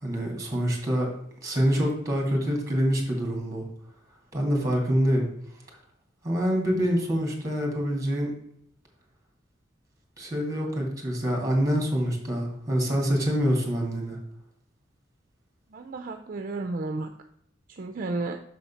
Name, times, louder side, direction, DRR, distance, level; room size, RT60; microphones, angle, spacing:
voice 1, 0.0-1.1 1.4-3.7 4.3-5.3 6.2-8.3 10.2-14.2, equal, 20° right, 1 dB, 2.1 m, -26 dB
voice 2, 15.7-17.1 17.7-18.4, right 3 dB, 45° right, 5 dB, 0.5 m, -32 dB
6.4 x 4.1 x 5.5 m, 0.70 s
head